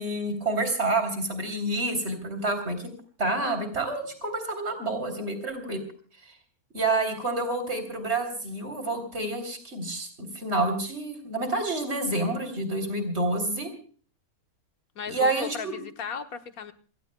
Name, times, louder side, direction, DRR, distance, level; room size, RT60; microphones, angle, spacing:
voice 1, 0.0-2.9 3.2-5.8 6.7-13.7 15.1-15.8, right 2 dB, 45° right, 6 dB, 3.9 m, -28 dB
voice 2, 14.9-16.7, left 7 dB, 75° left, 8 dB, 1.6 m, -36 dB
28.0 x 18.0 x 2.3 m, 0.43 s
omnidirectional pair, 1.5 m